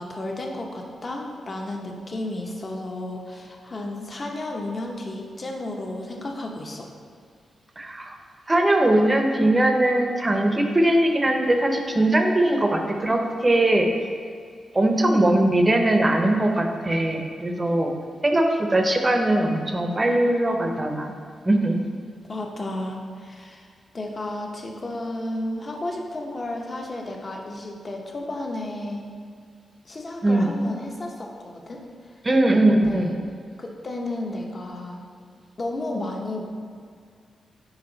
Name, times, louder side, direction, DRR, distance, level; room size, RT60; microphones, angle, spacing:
voice 1, 0.0-6.9 22.3-23.7 23.9-29.0 29.8-31.8 32.7-33.2 33.6-35.0 35.6-36.4, left 1 dB, 35° left, 1 dB, 0.8 m, -32 dB
voice 2, 7.8-8.2 8.5-14.0 14.7-17.9 18.2-21.1 21.5-21.8 30.2-30.5 32.2-33.1, right 1 dB, 20° right, 3 dB, 0.7 m, -20 dB
5.6 x 4.8 x 3.9 m, 2.2 s
cardioid pair, 100°, 0 cm